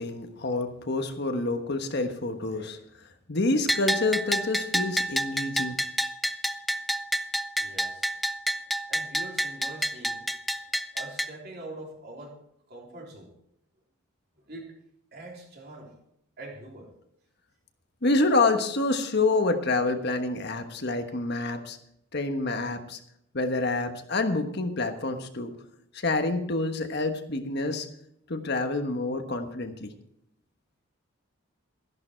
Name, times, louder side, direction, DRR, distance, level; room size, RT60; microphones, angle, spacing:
voice 1, 0.0-2.8 3.3-5.8 18.0-21.8 22.1-23.0 23.3-25.5 26.0-27.9 28.3-29.9, left 2 dB, 50° left, 6 dB, 1.3 m, -27 dB
Bell, 3.7-11.3, equal, ahead, 0.4 m, -29 dB
voice 2, 7.6-8.1 8.9-10.7 10.9-12.4 12.7-13.3 14.4-14.8 15.1-15.9 16.4-16.9 21.1-21.2, right 1 dB, 50° right, -1 dB, 3.4 m, -44 dB
13.5 x 11.0 x 4.5 m, 0.74 s
head